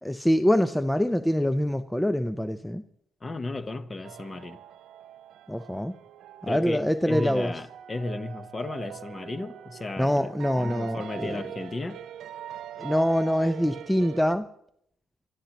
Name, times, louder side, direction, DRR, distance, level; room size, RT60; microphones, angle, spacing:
voice 1, 0.0-2.8 5.5-5.9 6.4-7.5 10.0-11.4 12.8-14.5, equal, 5° left, 0.6 m, -25 dB
voice 2, 3.2-4.6 6.5-10.3 10.5-12.0, left 2 dB, 30° left, 1.0 m, -34 dB
sound 1, 4.0-14.3, right 10 dB, 75° right, 0.5 m, -42 dB
27.0 x 13.0 x 3.0 m
cardioid pair, 90°, 0 cm